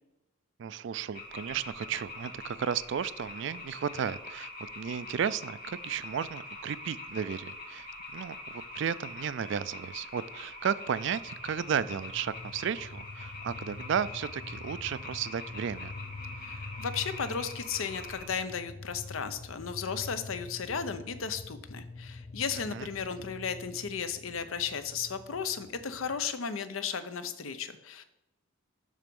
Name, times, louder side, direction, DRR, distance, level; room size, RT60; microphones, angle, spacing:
voice 1, 0.6-7.9 8.1-15.9 22.7-22.9, right 7 dB, 60° right, 17 dB, 0.3 m, -34 dB
sound 1, 1.1-18.2, left 2 dB, 45° left, 1.9 m, -44 dB
sound 2, 11.1-26.3, left 3 dB, 25° left, 0.4 m, -46 dB
voice 2, 16.4-28.0, left 6 dB, 80° left, 11 dB, 0.7 m, -35 dB
7.4 x 6.0 x 5.3 m, 0.93 s
head